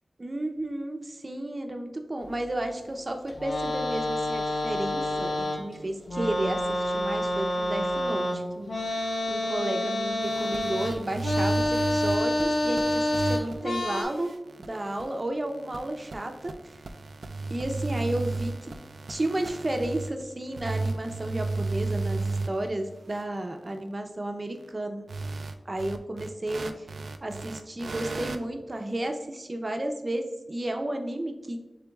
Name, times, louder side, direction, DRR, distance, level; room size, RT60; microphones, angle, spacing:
voice 1, 0.2-14.4 14.7-16.5 17.5-18.7 19.1-25.1 25.7-26.9 27.2-31.6, right 1 dB, 40° right, 5 dB, 0.6 m, -32 dB
sound 1, 3.3-5.7 6.0-14.0, left 1 dB, 80° left, 1.0 m, -28 dB
sound 2, 10.2-13.6 13.9-20.2 20.5-22.7 23.1-23.2 25.1-28.4, right 3 dB, 85° right, 0.3 m, -34 dB
6.8 x 3.4 x 2.3 m, 1.0 s
wide cardioid pair, 60°, 0 cm